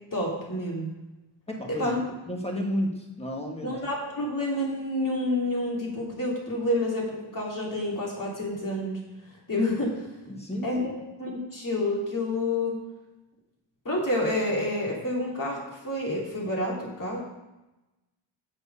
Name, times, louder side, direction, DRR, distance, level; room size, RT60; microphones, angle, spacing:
voice 1, 0.1-0.9 1.7-2.0 3.6-9.0 9.5-10.1 10.6-12.8 13.8-17.2, left 1 dB, 40° left, -3 dB, 2.7 m, -29 dB
voice 2, 1.5-1.9 2.3-3.7 10.3-10.9 11.3-11.4, equal, 15° left, 0 dB, 1.5 m, -32 dB
6.7 x 6.2 x 5.5 m, 1.0 s
wide cardioid pair, 115°, 47 cm